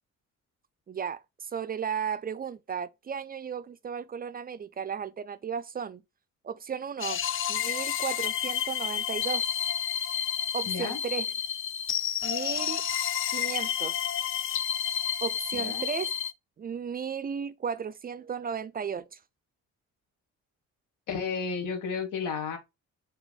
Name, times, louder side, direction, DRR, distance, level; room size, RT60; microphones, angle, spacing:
voice 1, 0.9-6.0 6.4-7.2 7.5-9.5 10.5-11.3 12.2-12.8 13.3-14.0 15.2-16.1 16.6-19.2, right 7 dB, 30° right, 0.4 m, -35 dB
sound 1, 7.0-16.3, left 9 dB, 45° left, 0.4 m, -30 dB
voice 2, 10.7-11.0 15.6-15.9 21.1-22.6, left 5 dB, 80° left, 1.5 m, -32 dB
5.1 x 3.4 x 2.3 m
cardioid pair, 90°, 30 cm